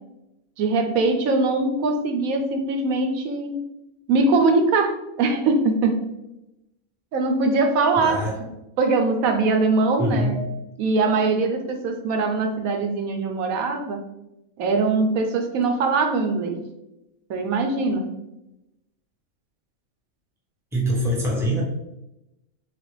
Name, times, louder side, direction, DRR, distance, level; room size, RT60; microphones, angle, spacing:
voice 1, 0.6-3.6 4.1-6.0 7.1-8.3 8.8-10.4 10.8-14.0 14.6-16.6 17.3-18.1, right 3 dB, 80° right, 5 dB, 1.1 m, -22 dB
voice 2, 8.0-8.4 10.0-10.4 20.7-21.6, equal, ahead, -4 dB, 0.7 m, -24 dB
4.1 x 3.3 x 3.2 m, 0.90 s
omnidirectional pair, 1.4 m